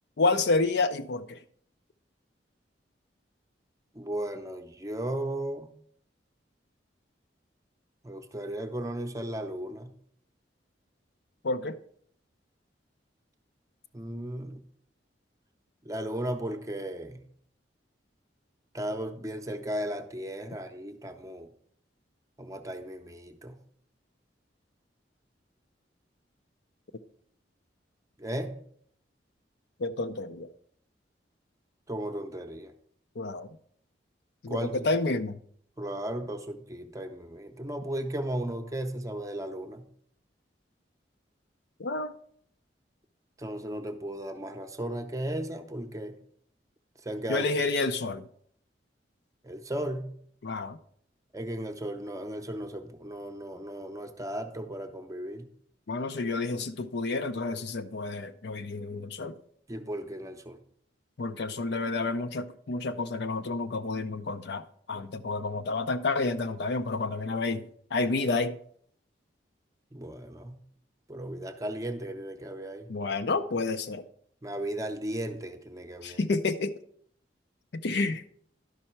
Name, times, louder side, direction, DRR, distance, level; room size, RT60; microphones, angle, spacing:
voice 1, 0.2-1.4 11.4-11.8 29.8-30.5 33.2-33.5 34.4-34.6 34.8-35.4 41.8-42.1 47.3-48.2 50.4-50.8 55.9-59.3 61.2-68.6 72.9-74.0 76.0-76.7 77.7-78.2, left 3 dB, 65° left, 0.5 m, -29 dB
voice 2, 3.9-5.7 8.0-9.9 13.9-14.6 15.8-17.3 18.7-21.5 22.4-23.6 28.2-28.6 31.9-32.7 34.5-34.9 35.8-39.9 43.4-46.1 47.0-47.6 49.4-50.1 51.3-55.5 59.7-60.6 69.9-70.6 71.1-72.9 74.4-76.2, right 1 dB, 20° right, 0.7 m, -35 dB
11.5 x 5.5 x 4.4 m
head